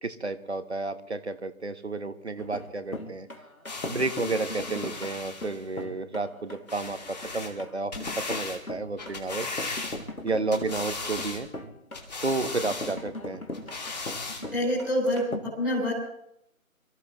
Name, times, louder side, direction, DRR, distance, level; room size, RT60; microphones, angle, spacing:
voice 1, 0.0-3.3 3.9-9.5 10.2-11.5 12.2-13.4, right 3 dB, 50° right, 11 dB, 1.3 m, -31 dB
sound 1, 2.4-15.4, left 1 dB, 75° left, 2.6 m, -39 dB
sound 2, 3.7-5.6 6.7-7.5 7.9-8.6 9.0-10.2 10.5-11.4 11.9-13.0 13.5-14.4 15.1-15.2, left 3 dB, 30° left, 2.4 m, -37 dB
voice 2, 14.5-15.9, left 1 dB, 5° left, -11 dB, 2.8 m, -27 dB
27.5 x 15.0 x 3.1 m, 0.74 s
figure-of-eight pair, 160°, 43 cm